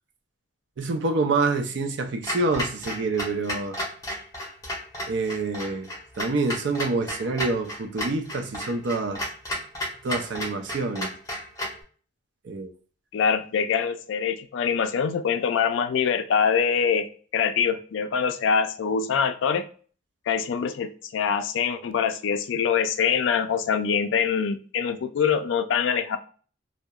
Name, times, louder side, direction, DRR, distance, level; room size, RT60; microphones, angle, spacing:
voice 1, 0.8-3.8 5.1-5.9 6.2-9.2 10.0-11.1 12.4-12.7, right 3 dB, 70° right, 0.4 m, -27 dB
Clock, 2.2-11.8, equal, 20° left, 0.7 m, -33 dB
voice 2, 13.1-17.1 17.3-19.7 20.3-26.2, left 6 dB, 90° left, 0.3 m, -24 dB
2.7 x 2.1 x 2.2 m
head